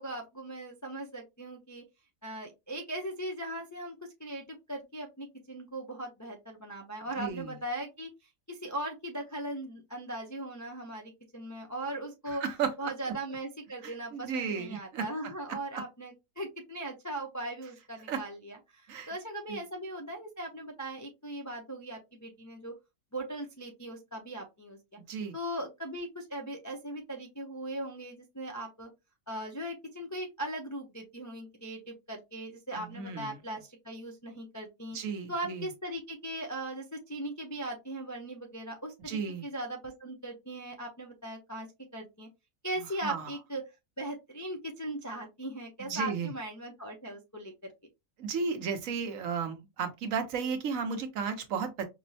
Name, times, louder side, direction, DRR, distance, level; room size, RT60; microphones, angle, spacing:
voice 1, 0.0-1.8 2.2-8.1 8.5-12.4 12.8-22.7 23.1-24.8 25.3-28.9 29.3-35.0 35.3-41.7 41.9-42.3 42.6-43.6 44.0-47.5, right 1 dB, 30° left, 0.3 m, -39 dB
voice 2, 7.2-7.5 12.3-12.7 13.8-15.1 15.7-15.8 18.1-18.2 18.9-19.1 19.5-19.6 25.1-25.3 32.8-33.4 34.9-35.7 39.1-39.4 43.0-43.3 45.8-46.3 48.2-51.8, right 6 dB, 75° right, 1.2 m, -34 dB
5.1 x 2.1 x 2.7 m
omnidirectional pair, 1.5 m